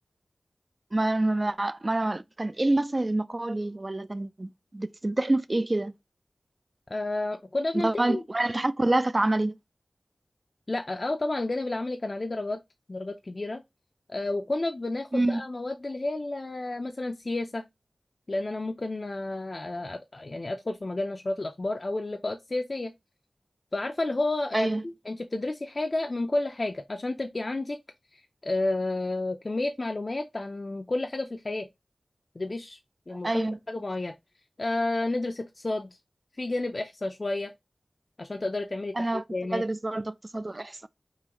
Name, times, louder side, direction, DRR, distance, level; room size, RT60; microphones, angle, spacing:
voice 1, 0.9-5.9 7.7-9.6 15.1-15.4 24.5-24.8 33.2-33.6 39.0-39.2 39.5-40.9, right 2 dB, 40° right, 0.3 m, -27 dB
voice 2, 6.9-8.2 10.7-12.6 12.9-13.6 14.1-17.6 18.3-22.9 23.7-27.8 28.1-31.7 32.4-32.8 33.1-34.1 34.6-36.0 36.4-37.5 38.2-39.6, left 2 dB, 50° left, 0.4 m, -31 dB
3.8 x 2.5 x 2.9 m
cardioid pair, 45°, 0 cm